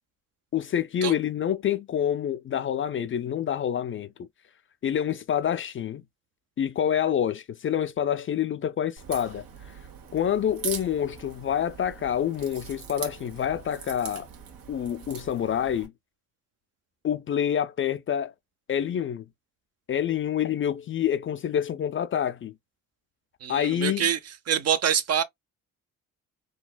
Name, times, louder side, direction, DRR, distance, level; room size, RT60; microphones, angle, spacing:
voice 1, 0.5-4.1 4.8-6.0 6.6-9.4 10.1-14.3 14.7-15.9 17.0-18.3 18.7-19.2 19.9-22.5 23.5-24.1, left 9 dB, 40° left, 0.4 m, -27 dB
Crack, 9.0-15.9, right 7 dB, 80° right, 1.3 m, -41 dB
voice 2, 23.4-24.2 24.5-25.2, right 8 dB, 50° right, 0.7 m, -25 dB
4.0 x 2.2 x 2.2 m
cardioid pair, 80°, 34 cm